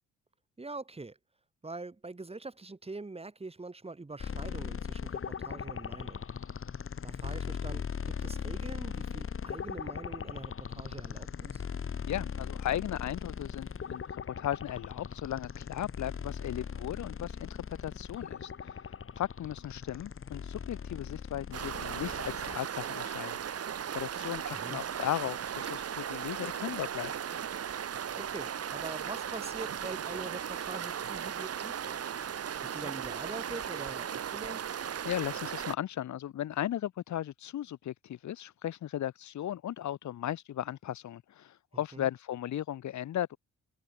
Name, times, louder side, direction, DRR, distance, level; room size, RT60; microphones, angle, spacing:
voice 1, 0.6-1.2 1.6-6.2 7.0-11.6 24.5-24.8 28.1-32.0 32.6-34.6 41.9-42.1, right 3 dB, 20° right, 4.9 m, -44 dB
sound 1, 4.2-22.6, left 6 dB, 45° left, 5.3 m, -39 dB
voice 2, 12.1-23.7 23.9-27.1 35.0-43.4, left 11 dB, 70° left, 2.1 m, -36 dB
sound 2, 21.5-35.7, right 8 dB, 55° right, 2.8 m, -37 dB
cardioid pair, 90°, 30 cm